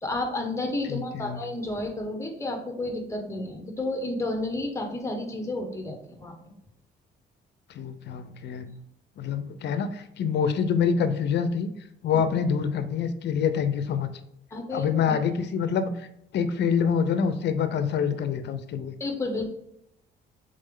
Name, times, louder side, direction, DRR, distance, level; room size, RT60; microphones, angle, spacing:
voice 1, 0.0-6.3 14.5-15.2 19.0-19.5, left 2 dB, 15° left, 3 dB, 1.0 m, -31 dB
voice 2, 0.9-1.4 7.7-8.7 9.2-11.7 12.0-14.1 14.7-16.1 16.3-18.9, left 6 dB, 60° left, 10 dB, 0.5 m, -26 dB
3.8 x 3.2 x 3.6 m, 0.78 s
cardioid pair, 90°, 20 cm